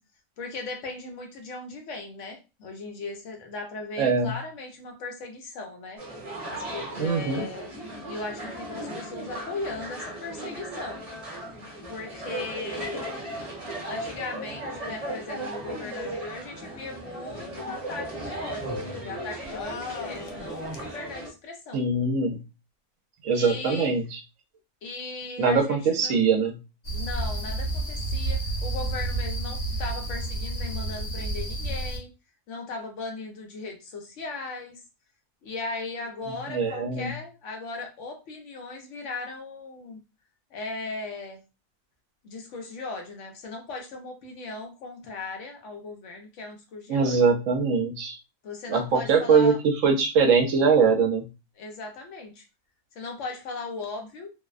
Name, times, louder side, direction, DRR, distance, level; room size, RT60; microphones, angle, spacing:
voice 1, 0.4-6.0 6.5-7.7 8.1-11.0 11.9-13.3 13.8-21.8 23.3-24.0 24.8-26.2 26.9-32.1 32.5-34.8 35.4-40.0 40.5-41.4 42.2-47.2 48.4-49.6 51.6-52.4 52.9-54.3, left 3 dB, 65° left, 3 dB, 0.9 m, -37 dB
voice 2, 4.0-4.3 7.0-7.4 21.7-22.4 23.2-24.2 25.4-26.6 36.5-37.1 46.9-48.2 48.7-51.3, right 5 dB, 70° right, 4 dB, 0.9 m, -22 dB
sound 1, 6.0-21.3, right 1 dB, 30° right, 0.8 m, -36 dB
sound 2, 19.4-21.0, left 5 dB, 85° left, 0.4 m, -39 dB
sound 3, 26.8-32.0, right 2 dB, 40° left, 0.7 m, -30 dB
2.6 x 2.0 x 2.3 m, 0.28 s
omnidirectional pair, 1.5 m